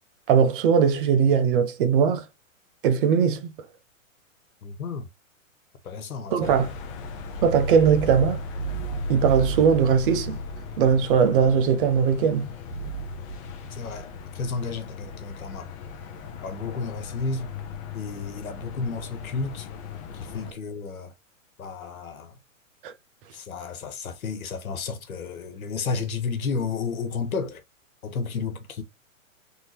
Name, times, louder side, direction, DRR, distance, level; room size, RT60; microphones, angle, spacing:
voice 1, 0.3-2.3 2.8-3.5 6.3-6.7 7.4-8.4 9.1-10.4 10.8-12.5 22.8-22.9, right 7 dB, 40° right, 0.7 m, -20 dB
voice 2, 4.6-5.1 5.8-6.6 13.7-15.7 16.4-17.5 17.9-19.7 20.1-21.1 21.6-22.4 23.3-27.6 28.0-28.8, left 4 dB, 90° left, 1.2 m, -32 dB
sound 1, 6.4-20.5, left 1 dB, 25° left, 0.6 m, -35 dB
3.7 x 2.8 x 2.8 m
hypercardioid pair, 140°, 41 cm